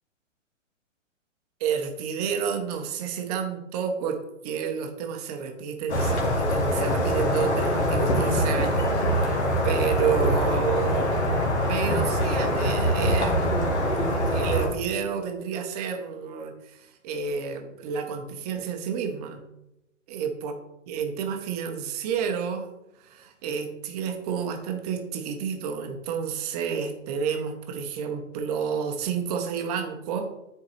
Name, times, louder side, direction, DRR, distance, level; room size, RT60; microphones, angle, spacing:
voice 1, 1.6-11.1 11.7-19.4 20.1-20.5 20.9-22.7 23.0-30.3, right 7 dB, 30° right, 5 dB, 0.9 m, -30 dB
sound 1, 5.9-14.7, equal, 60° left, 1.8 m, -24 dB
9.5 x 4.6 x 3.2 m, 0.89 s
figure-of-eight pair, 120°, 39 cm